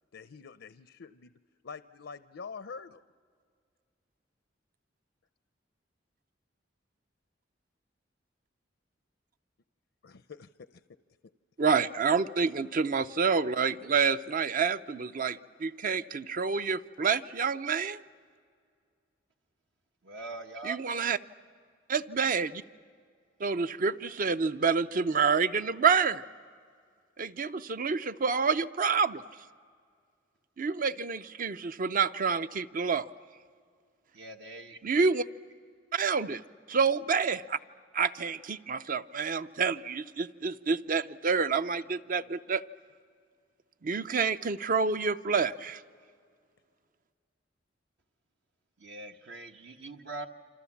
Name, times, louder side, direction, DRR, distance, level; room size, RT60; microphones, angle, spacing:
voice 1, 0.1-1.3 1.6-3.0 10.0-10.8 27.4-27.5, left 5 dB, 80° left, 12 dB, 0.6 m, -46 dB
voice 2, 11.6-18.0 20.6-21.2 21.9-22.6 23.4-26.2 27.2-29.2 30.6-33.1 34.8-35.2 35.9-36.4 36.7-37.6 37.9-42.6 43.8-45.8, right 5 dB, 50° right, 12 dB, 0.6 m, -28 dB
voice 3, 20.0-20.8 34.1-34.8 48.8-50.3, right 2 dB, 70° right, 4 dB, 1.1 m, -42 dB
28.0 x 26.5 x 7.2 m, 2.2 s
head